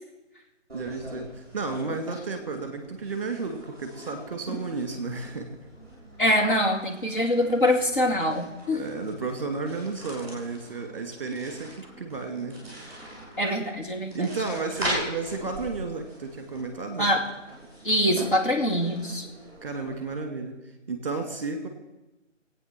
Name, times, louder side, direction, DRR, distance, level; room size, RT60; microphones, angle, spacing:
sound 1, 0.7-20.2, right 1 dB, 5° left, 5.3 m, -41 dB
voice 1, 0.7-5.5 8.7-12.9 14.1-17.1 19.6-20.5 20.9-21.7, right 4 dB, 25° right, 6 dB, 2.3 m, -32 dB
voice 2, 6.2-8.9 13.4-14.3 17.0-17.2 17.8-19.2, left 1 dB, 40° left, 0 dB, 2.5 m, -24 dB
20.5 x 9.0 x 6.0 m, 0.97 s
figure-of-eight pair, 170°, 38 cm